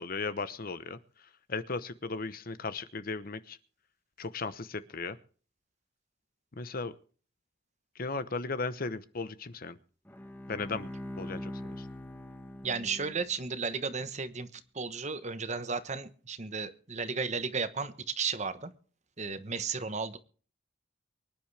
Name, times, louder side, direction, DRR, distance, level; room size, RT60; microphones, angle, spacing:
voice 1, 0.0-3.6 4.2-5.2 6.6-6.9 8.0-9.8 10.5-10.9 11.2-11.9, left 4 dB, 50° left, 13 dB, 0.9 m, -36 dB
Bowed string instrument, 10.0-13.6, left 1 dB, 10° left, 1.5 m, -42 dB
voice 2, 12.6-18.7 19.2-20.2, right 5 dB, 40° right, 11 dB, 1.1 m, -34 dB
24.5 x 10.5 x 3.4 m, 0.41 s
head